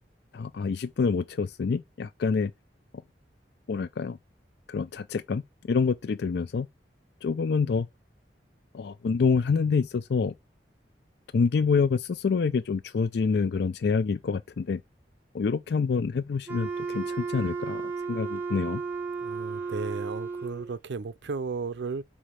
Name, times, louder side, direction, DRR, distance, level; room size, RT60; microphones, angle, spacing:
voice 1, 0.3-2.5 3.7-4.2 4.7-6.7 7.2-7.9 8.7-10.3 11.3-14.8 15.3-18.8, left 5 dB, 65° left, 0.4 m, -27 dB
Wind instrument woodwind instrument, 16.5-20.8, right 4 dB, 10° right, 1.3 m, -34 dB
voice 2, 19.2-22.0, right 4 dB, 75° right, 0.5 m, -34 dB
5.0 x 4.3 x 5.7 m
head